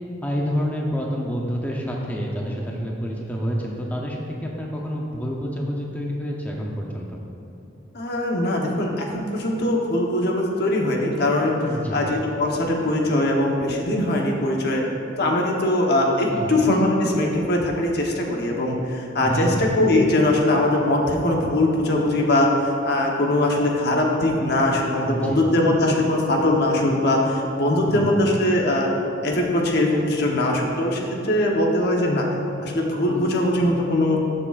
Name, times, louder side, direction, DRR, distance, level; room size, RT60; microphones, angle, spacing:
voice 1, 0.2-7.2 11.6-12.0 16.3-16.5 19.2-19.6 25.0-25.4 27.9-28.1 33.1-33.3, equal, 10° left, -2 dB, 0.6 m, -28 dB
voice 2, 7.9-11.6 11.9-14.8 15.2-22.5 22.8-28.9 29.2-32.3 32.6-34.2, left 1 dB, 60° left, 0 dB, 1.0 m, -21 dB
13.0 x 6.7 x 2.5 m, 2.7 s
head